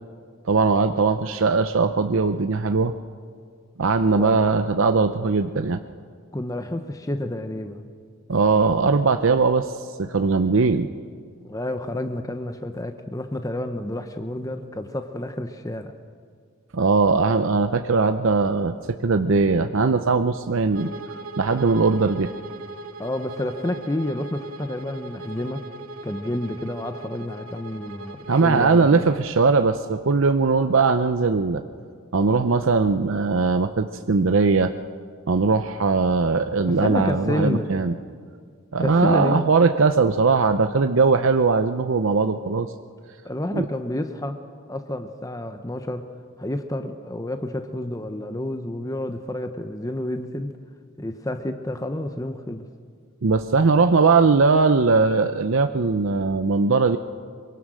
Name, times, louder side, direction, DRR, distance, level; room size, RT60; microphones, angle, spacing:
voice 1, 0.5-2.9 3.8-5.8 8.3-10.9 16.7-20.9 21.4-22.3 28.3-31.6 32.1-34.7 35.3-37.9 38.7-42.7 43.5-43.7 53.2-57.0, right 4 dB, 65° right, 9 dB, 0.6 m, -20 dB
voice 2, 6.3-7.8 11.4-15.9 23.0-25.6 26.0-29.1 36.6-37.7 38.8-39.5 43.2-44.4 44.7-46.0 46.4-50.5 51.0-52.6, left 1 dB, 15° left, 7 dB, 0.9 m, -29 dB
Bowed string instrument, 20.7-29.3, right 2 dB, 85° right, 1.1 m, -39 dB
24.0 x 22.5 x 6.3 m, 2.1 s
head